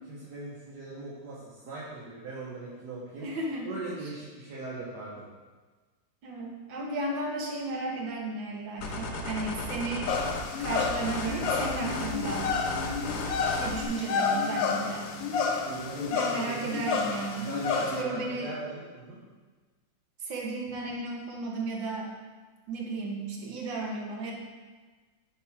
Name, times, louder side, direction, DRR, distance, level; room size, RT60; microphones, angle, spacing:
voice 1, 0.1-3.3 3.6-5.2 15.6-16.8 17.0-19.2, right 2 dB, 60° right, -6 dB, 1.7 m, -40 dB
voice 2, 3.2-3.7 6.2-10.1 10.5-12.6 13.1-15.1 16.1-17.5 17.8-18.5 20.2-22.1 22.7-24.3, right 3 dB, 80° right, 0 dB, 1.9 m, -34 dB
sound 1, 8.8-13.9, left 1 dB, 55° left, 1.1 m, -35 dB
sound 2, 10.1-18.0, left 5 dB, 80° left, 1.4 m, -30 dB
9.4 x 3.5 x 4.7 m, 1.3 s
omnidirectional pair, 2.1 m